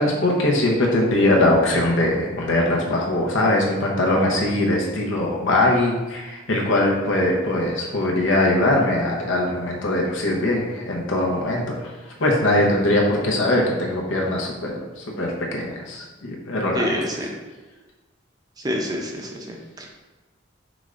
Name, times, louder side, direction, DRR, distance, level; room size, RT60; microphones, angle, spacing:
voice 1, 0.0-11.9 12.2-17.0, left 1 dB, 80° left, -1 dB, 0.9 m, -21 dB
voice 2, 16.7-17.3 18.6-20.0, equal, 20° right, 1 dB, 0.5 m, -28 dB
5.0 x 3.2 x 2.5 m, 1.2 s
head